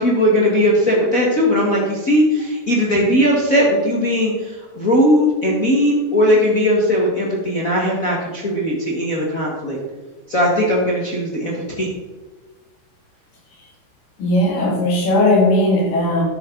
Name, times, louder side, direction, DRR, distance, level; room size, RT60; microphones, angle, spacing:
voice 1, 0.0-9.8 10.3-11.9, equal, 35° left, -4 dB, 1.6 m, -18 dB
voice 2, 14.2-16.2, left 1 dB, 75° left, -2 dB, 4.4 m, -17 dB
12.0 x 9.1 x 3.9 m, 1.2 s
omnidirectional pair, 3.9 m